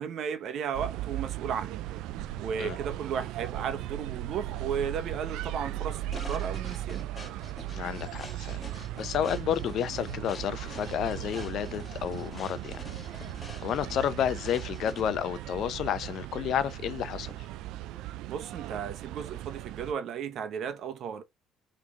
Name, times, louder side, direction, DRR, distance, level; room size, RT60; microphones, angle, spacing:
voice 1, 0.0-1.8 2.4-7.1 18.2-21.2, right 7 dB, 60° right, 0.9 m, -34 dB
sound 1, 0.7-19.9, right 14 dB, 80° right, 0.4 m, -37 dB
sound 2, 6.1-15.3, left 3 dB, 25° left, 2.3 m, -46 dB
voice 2, 7.7-8.6 9.0-12.8 13.6-17.5, left 9 dB, 65° left, 0.6 m, -31 dB
3.7 x 3.3 x 3.6 m
supercardioid pair, 90°, 0 cm